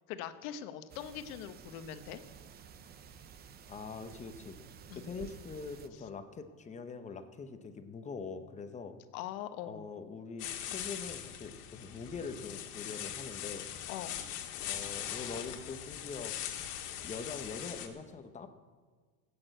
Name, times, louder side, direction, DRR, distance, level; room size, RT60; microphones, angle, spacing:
voice 1, 0.1-2.2 4.9-5.1 9.1-9.8 13.9-14.2, left 10 dB, 65° left, 10 dB, 1.2 m, -42 dB
sound 1, 0.9-5.9, right 7 dB, 20° right, 0.6 m, -52 dB
voice 2, 3.7-4.6 5.0-9.0 9.6-13.7 14.6-16.4 17.0-18.5, left 5 dB, 15° left, 8 dB, 0.7 m, -43 dB
sound 2, 10.4-17.9, left 10 dB, 90° left, 1.9 m, -41 dB
15.5 x 8.7 x 7.9 m, 1.5 s
supercardioid pair, 145°, 45 cm